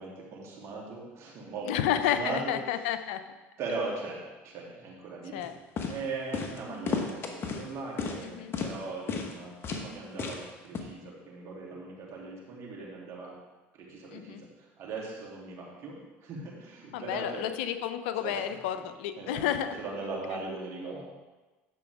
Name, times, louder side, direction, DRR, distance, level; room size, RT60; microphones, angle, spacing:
voice 1, 0.0-2.5 3.6-5.5 5.9-13.3 13.8-17.5 18.2-18.4 18.8-18.9 19.2-19.5 19.8-21.0, right 3 dB, 55° right, -3 dB, 3.1 m, -39 dB
voice 2, 1.7-3.2 5.3-5.5 8.2-8.5 14.1-14.4 16.9-19.8, left 10 dB, 80° left, 10 dB, 0.6 m, -31 dB
sound 1, 5.4-5.5 5.8-6.0 6.3-6.6 6.9-7.6 8.0-8.2 8.5-8.7 9.1-9.3 9.6-9.9 10.2-10.4 10.7-10.8, left 5 dB, 40° left, 1.3 m, -32 dB
11.0 x 7.0 x 3.6 m, 1.2 s
supercardioid pair, 90°, 6 cm